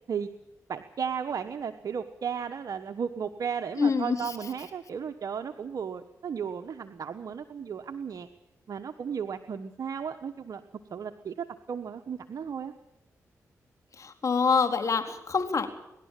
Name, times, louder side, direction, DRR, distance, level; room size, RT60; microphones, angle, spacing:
voice 1, 0.7-8.3 8.7-10.6 10.9-12.7, right 7 dB, 65° right, 7 dB, 1.2 m, -34 dB
voice 2, 3.8-4.2 14.0-15.7, left 5 dB, 55° left, 6 dB, 3.9 m, -25 dB
25.0 x 12.5 x 9.1 m, 0.88 s
cardioid pair, 55°, 6 cm